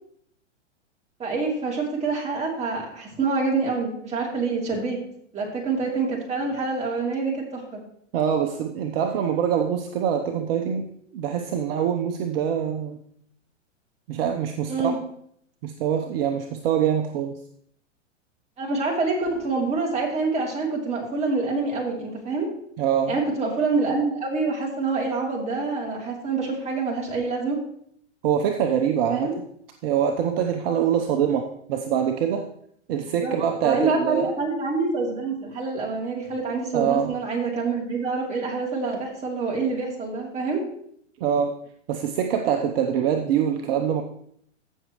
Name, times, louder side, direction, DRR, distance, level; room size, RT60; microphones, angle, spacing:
voice 1, 1.2-5.0 5.3-7.6 14.7-15.0 18.6-22.5 23.1-27.6 29.1-29.3 33.0-33.3 33.6-40.6, right 4 dB, 15° right, -1 dB, 2.7 m, -26 dB
voice 2, 8.1-10.9 11.1-13.0 14.1-14.9 15.6-17.4 22.8-23.2 28.2-29.3 29.8-32.4 32.9-34.3 36.7-37.1 41.2-41.5 41.9-44.0, right 8 dB, 50° right, 5 dB, 0.9 m, -24 dB
15.5 x 6.4 x 3.1 m, 0.67 s
hypercardioid pair, 120°, 37 cm